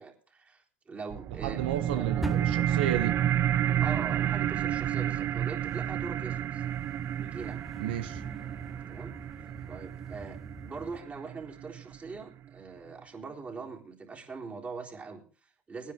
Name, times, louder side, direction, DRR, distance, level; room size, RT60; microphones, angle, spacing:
voice 1, 0.0-2.3 3.8-6.6 7.2-7.6 8.9-9.2 9.7-15.9, right 4 dB, 30° right, 3.9 m, -42 dB
sound 1, 1.1-12.1, right 11 dB, 50° right, 0.6 m, -31 dB
voice 2, 1.4-3.2 7.8-8.2, right 11 dB, 80° right, 1.2 m, -32 dB
sound 2, 2.2-11.0, right 1 dB, 5° right, 0.7 m, -43 dB
18.5 x 10.0 x 3.7 m
hypercardioid pair, 75°, 5 cm